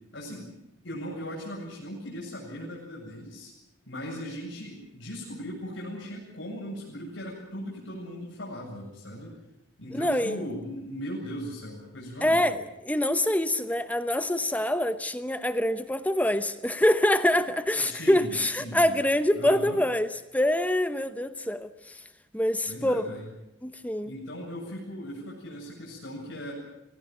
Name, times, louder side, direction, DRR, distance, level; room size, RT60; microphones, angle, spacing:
voice 1, 0.1-0.5 0.8-3.5 3.8-9.4 9.8-12.4 17.8-18.9 19.3-19.8 22.6-23.3 24.0-26.5, equal, 65° left, 8.0 m, -38 dB
voice 2, 9.9-10.4 12.2-12.6 12.8-22.0 22.3-23.1 23.6-24.1, left 1 dB, 5° left, 0.9 m, -25 dB
24.5 x 18.0 x 9.1 m
head